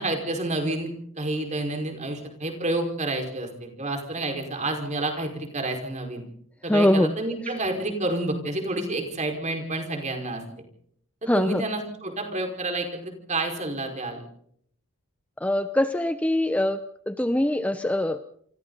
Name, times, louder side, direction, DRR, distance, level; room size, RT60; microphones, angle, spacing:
voice 1, 0.0-6.2 6.6-10.4 11.2-14.2, right 2 dB, 35° right, 3 dB, 5.0 m, -29 dB
voice 2, 6.7-7.2 11.3-11.6 15.4-18.2, left 1 dB, 5° left, 9 dB, 0.8 m, -23 dB
28.5 x 24.5 x 4.1 m, 0.65 s
head